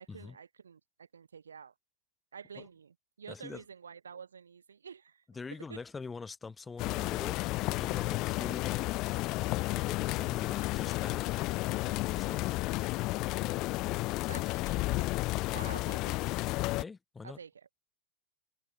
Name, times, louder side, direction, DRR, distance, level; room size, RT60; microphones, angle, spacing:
voice 1, 0.0-1.7 2.3-5.2 5.7-5.8 14.3-16.2 17.2-17.7, right 6 dB, 70° right, 4.5 m, -49 dB
voice 2, 3.3-3.6 5.3-8.8 9.7-11.3 11.8-12.6 16.8-17.4, left 4 dB, 15° left, 1.8 m, -44 dB
sound 1, 6.8-16.8, left 20 dB, 40° left, 1.0 m, -32 dB
figure-of-eight pair, 90°, 0 cm